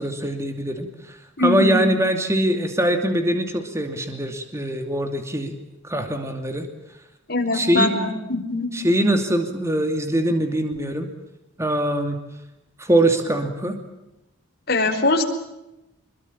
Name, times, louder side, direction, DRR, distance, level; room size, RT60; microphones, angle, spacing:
voice 1, 0.0-1.2 1.4-5.5 5.8-6.7 7.5-8.1 8.7-11.1 11.6-12.2 12.8-13.7, right 1 dB, 15° right, 5 dB, 2.7 m, -22 dB
voice 2, 1.4-1.8 7.3-8.7 14.7-15.2, left 2 dB, 45° left, 4 dB, 5.0 m, -22 dB
27.0 x 22.0 x 8.8 m, 0.92 s
head